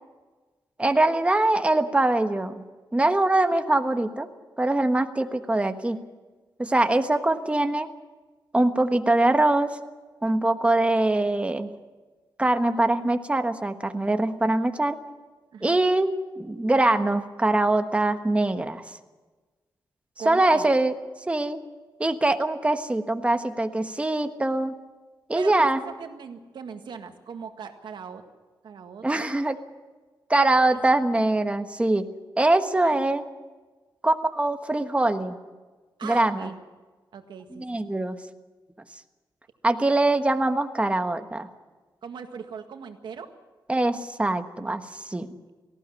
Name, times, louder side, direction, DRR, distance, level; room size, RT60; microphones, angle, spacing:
voice 1, 0.8-2.6 2.9-4.3 4.6-6.0 6.6-7.9 8.5-9.8 10.2-11.7 12.4-15.0 15.6-16.1 16.4-19.0 20.2-20.9 21.3-21.6 22.0-24.7 25.3-25.8 29.0-29.6 30.3-32.1 32.4-33.2 34.0-35.3 36.0-36.5 37.6-38.2 39.6-41.5 43.7-45.3, right 2 dB, 15° right, 7 dB, 1.3 m, -23 dB
voice 2, 15.5-15.8 20.2-20.7 25.3-28.2 28.6-29.3 30.7-30.9 32.8-33.0 36.0-36.5 37.1-37.8 42.0-43.3, right 6 dB, 80° right, 6 dB, 1.8 m, -39 dB
18.5 x 14.5 x 9.8 m, 1.3 s
cardioid pair, 90°, 8 cm